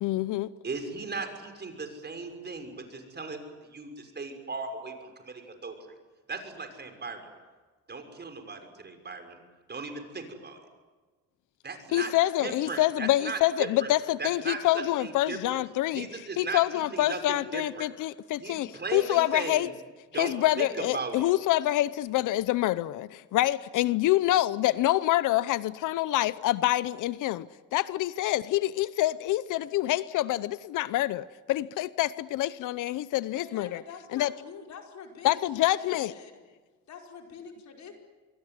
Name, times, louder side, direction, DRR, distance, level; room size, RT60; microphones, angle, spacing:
voice 1, 0.0-0.5 11.9-16.1 16.4-19.7 20.2-27.5 27.7-33.8 34.1-34.3 35.2-36.1, left 15 dB, 85° left, 17 dB, 0.7 m, -26 dB
voice 2, 0.6-5.7 6.3-7.3 7.9-9.4 9.7-10.6 11.6-12.1 12.4-13.9 14.2-15.6 15.9-17.9 18.4-19.7 20.1-21.3, right 4 dB, 35° right, 5 dB, 6.3 m, -37 dB
voice 3, 33.3-36.4 36.9-37.9, left 6 dB, 65° left, 2 dB, 5.1 m, -45 dB
26.5 x 22.5 x 9.6 m, 1.3 s
cardioid pair, 90°, 30 cm